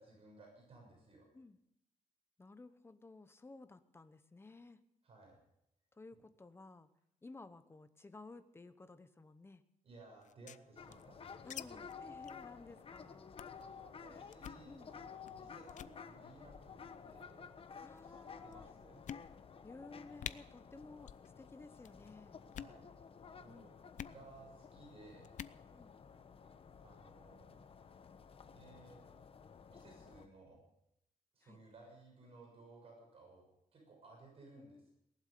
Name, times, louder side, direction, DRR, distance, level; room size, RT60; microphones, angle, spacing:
voice 1, 0.0-1.3 5.0-5.4 9.8-11.9 13.6-17.5 18.0-18.2 18.4-19.0 22.5-22.9 23.4-23.7 24.0-25.3 26.8-27.6 28.5-29.0 29.7-30.6 31.3-34.9, right 3 dB, 45° right, -1 dB, 6.6 m, -59 dB
voice 2, 2.4-4.8 6.0-6.9 7.2-9.6 11.4-13.3 14.1-14.3 14.6-14.9 17.8-18.7 19.6-21.1 21.4-22.4 23.5-23.8 25.7-25.9 31.4-31.6 34.6-34.9, left 3 dB, 15° left, 11 dB, 0.9 m, -55 dB
sound 1, 10.2-11.6 11.9-12.0 12.2-12.4 12.8-13.0 13.4-13.6 14.3-14.6 15.2-15.4 15.7-16.0 16.8-17.3 18.0-18.1 18.5-18.6 19.0-19.6 19.9-20.0 20.2-20.4 21.0-21.3 21.5-21.9 22.4-22.8 23.9-24.2 25.2-25.6, left 10 dB, 65° left, 0.6 m, -47 dB
sound 2, 10.8-30.3, left 6 dB, 40° left, 1.1 m, -54 dB
18.5 x 11.5 x 6.7 m, 0.79 s
wide cardioid pair, 150°, 14 cm